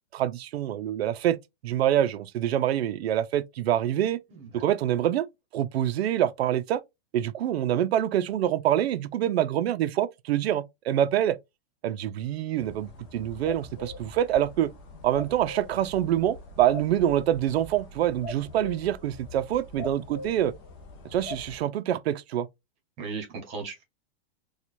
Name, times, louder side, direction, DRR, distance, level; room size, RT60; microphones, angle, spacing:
voice 1, 0.1-1.4 1.6-4.2 4.5-5.3 5.5-6.8 7.1-11.4 11.8-14.7 15.0-20.5 21.1-22.5, right 11 dB, 85° right, 0.5 m, -26 dB
voice 2, 4.3-4.6 23.0-23.8, right 4 dB, 20° right, 1.1 m, -37 dB
sound 1, 12.6-21.6, left 2 dB, 30° left, 0.7 m, -42 dB
4.4 x 2.3 x 2.6 m
supercardioid pair, 170°, 31 cm